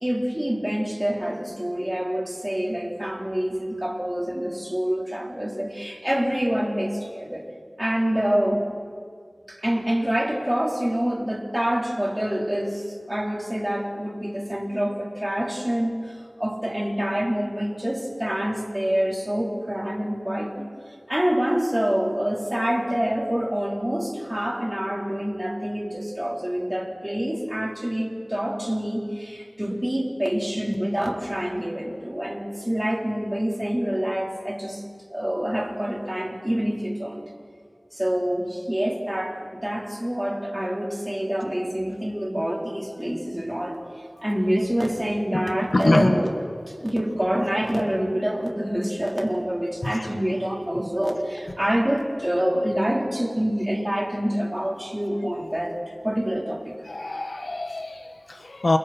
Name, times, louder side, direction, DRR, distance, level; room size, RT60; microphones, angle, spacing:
voice 1, 0.0-7.4 7.8-8.6 9.5-20.7 21.1-34.8 35.1-37.3 37.9-43.8 44.2-46.3 46.7-55.8 56.0-56.7, equal, 15° right, -1 dB, 4.4 m, -26 dB
voice 2, 45.7-46.2 49.8-50.1 56.8-58.8, left 2 dB, 75° left, 5 dB, 1.6 m, -24 dB
29.5 x 28.5 x 4.6 m, 2.1 s
wide cardioid pair, 55°, 0 cm